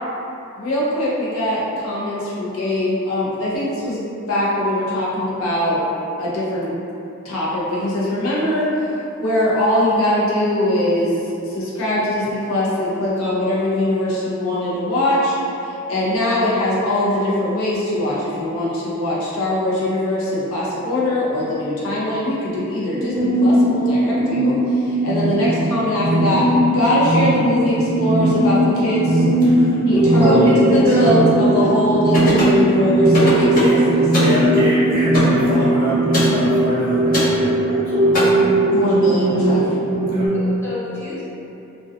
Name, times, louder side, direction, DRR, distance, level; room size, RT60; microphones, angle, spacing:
voice 1, 0.5-4.0 4.3-5.8 6.2-6.7 7.2-8.9 9.2-11.1 11.5-15.3 15.6-26.4 26.7-29.2 29.8-34.0 38.7-39.6, left 1 dB, 80° left, -8 dB, 0.6 m, -21 dB
sound 1, 22.9-40.3, right 1 dB, 30° right, 0.4 m, -18 dB
voice 2, 29.5-30.5 30.8-31.1 33.5-33.8 34.1-38.3 40.1-40.3, equal, 45° right, -10 dB, 0.8 m, -27 dB
voice 3, 30.2-31.1 32.8-32.9 40.3-41.2, left 1 dB, 10° left, -11 dB, 0.7 m, -24 dB
sound 2, 32.1-32.6 33.1-33.8 34.1-34.4 35.1-35.4 36.1-36.3 37.1-37.3 38.1-38.2, left 1 dB, 45° left, 0.7 m, -21 dB
2.5 x 2.2 x 2.4 m, 2.8 s
head